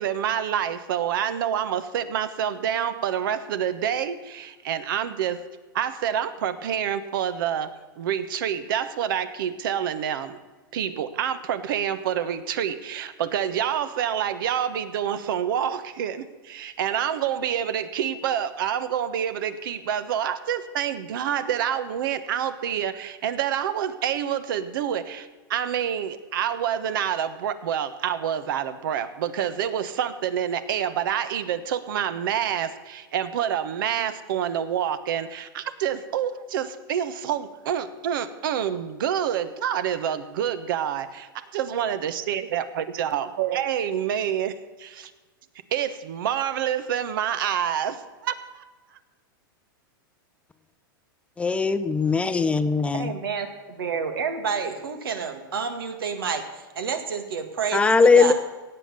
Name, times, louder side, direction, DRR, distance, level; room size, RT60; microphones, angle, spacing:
voice 1, 0.0-5.4 5.7-7.7 8.0-10.4 10.7-41.1 41.5-45.1 45.7-48.3, right 9 dB, 70° right, 12 dB, 1.2 m, -27 dB
voice 2, 51.4-53.1 57.7-58.3, left 4 dB, 10° left, 12 dB, 0.6 m, -19 dB
voice 3, 52.9-58.3, right 6 dB, 90° right, 7 dB, 2.0 m, -29 dB
17.5 x 7.9 x 6.9 m, 1.3 s
hypercardioid pair, 130°, 12 cm